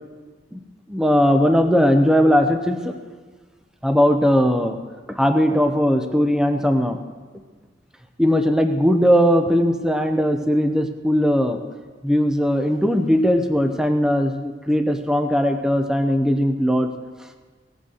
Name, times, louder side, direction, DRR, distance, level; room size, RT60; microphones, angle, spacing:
voice 1, 0.9-2.9 3.8-4.8 5.1-7.0 8.2-11.6 12.0-16.9, equal, 5° right, 6 dB, 0.7 m, -19 dB
18.0 x 8.1 x 6.4 m, 1.4 s
head